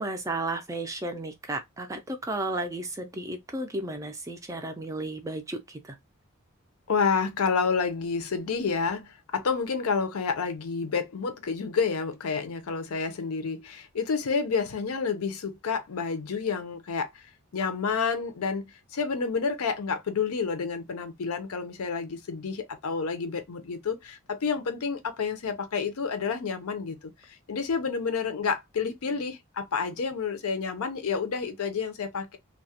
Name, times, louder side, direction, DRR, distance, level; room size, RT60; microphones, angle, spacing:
voice 1, 0.0-6.0, right 2 dB, 15° right, 0.3 m, -33 dB
voice 2, 6.9-17.1 17.5-18.6 18.9-27.0 27.2-32.4, left 5 dB, 80° left, 0.5 m, -29 dB
2.3 x 2.1 x 2.7 m
head